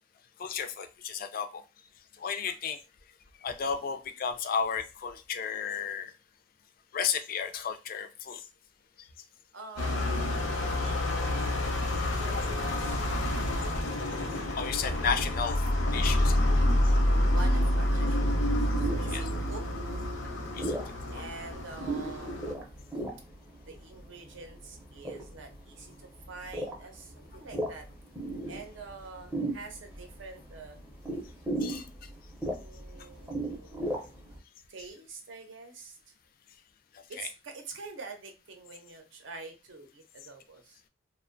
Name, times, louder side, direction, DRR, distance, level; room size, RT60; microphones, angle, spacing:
voice 1, 0.4-1.6 2.2-2.8 3.4-6.1 6.9-8.4 12.3-12.4 14.6-15.6 15.9-16.4 19.1-19.3 20.6-20.7 21.1-21.2 31.6-31.8, left 6 dB, 45° left, 8 dB, 0.3 m, -33 dB
voice 2, 9.5-14.0 17.3-20.0 21.1-22.6 23.7-27.9 28.5-30.8 32.4-34.1 34.7-36.0 37.1-40.8, right 4 dB, 70° right, 4 dB, 0.6 m, -46 dB
sound 1, 9.8-22.5, left 1 dB, 85° left, 0.7 m, -28 dB
sound 2, 18.3-34.4, right 1 dB, 10° right, 0.5 m, -38 dB
2.4 x 2.1 x 2.5 m, 0.29 s
head